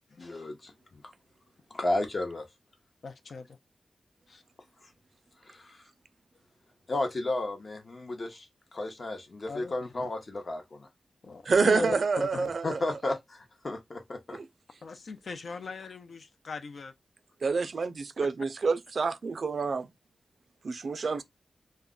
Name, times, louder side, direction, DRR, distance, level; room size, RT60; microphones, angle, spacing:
voice 1, 0.2-1.0 1.7-2.4 5.5-5.8 6.9-8.5 8.7-10.9 12.6-14.4, left 2 dB, 45° left, 0.7 m, -33 dB
voice 2, 3.0-3.6 4.3-4.4 9.5-10.1 11.2-12.5 14.8-16.9, left 4 dB, 70° left, 0.4 m, -39 dB
voice 3, 11.5-12.8 14.3-14.4 17.4-19.9 20.6-21.2, right 4 dB, 60° right, 0.3 m, -27 dB
2.2 x 2.0 x 3.6 m
wide cardioid pair, 100°, 0 cm